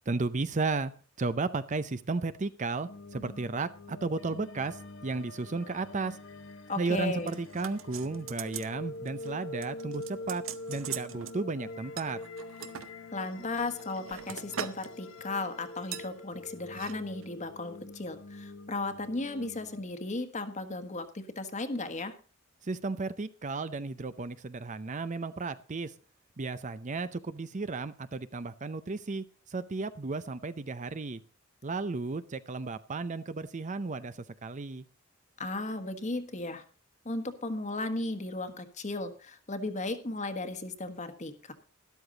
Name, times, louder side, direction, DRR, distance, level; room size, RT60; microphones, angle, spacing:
voice 1, 0.1-0.9 1.2-6.2 6.8-10.4 10.7-12.2 22.6-25.9 26.4-29.2 29.5-31.2 31.6-34.9, right 3 dB, 35° right, 13 dB, 0.6 m, -34 dB
sound 1, 2.9-19.8, left 2 dB, 75° left, 1.2 m, -45 dB
voice 2, 6.7-7.4 13.1-22.1 35.4-36.6 37.0-41.5, left 2 dB, 35° left, 10 dB, 1.4 m, -35 dB
sound 2, 7.3-8.7 9.1-9.3 9.6-11.4 12.0-12.9 13.5-14.9 15.2-15.4 15.9-16.1 16.7-16.9 17.2-17.3, right 8 dB, 75° right, 0.9 m, -41 dB
13.0 x 12.0 x 3.9 m, 0.38 s
head